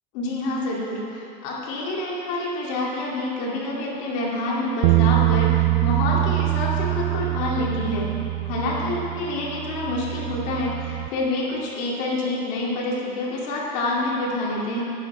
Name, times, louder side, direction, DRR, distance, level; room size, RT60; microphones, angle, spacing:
voice 1, 0.1-8.1 8.4-14.8, left 2 dB, 60° left, -4 dB, 2.5 m, -27 dB
sound 1, 4.8-11.1, right 17 dB, 75° right, 0.5 m, -24 dB
12.5 x 11.0 x 3.4 m, 2.7 s
cardioid pair, 175°, 20 cm